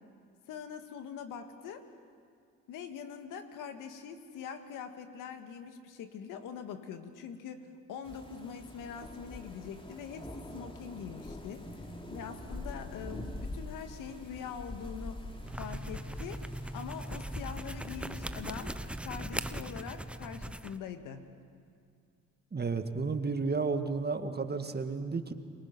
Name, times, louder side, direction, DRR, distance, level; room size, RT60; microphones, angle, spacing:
voice 1, 0.5-1.9 2.7-11.7 12.1-15.2 15.6-16.4 16.7-18.8 19.0-21.3, left 7 dB, 75° left, 7 dB, 1.9 m, -43 dB
sound 1, 8.0-19.0, left 1 dB, 15° left, 3.0 m, -45 dB
sound 2, 15.4-20.8, right 1 dB, 5° right, 0.8 m, -40 dB
voice 2, 22.5-25.3, right 4 dB, 30° right, 7 dB, 2.0 m, -32 dB
29.0 x 22.5 x 6.0 m, 2.3 s
supercardioid pair, 60°, 32 cm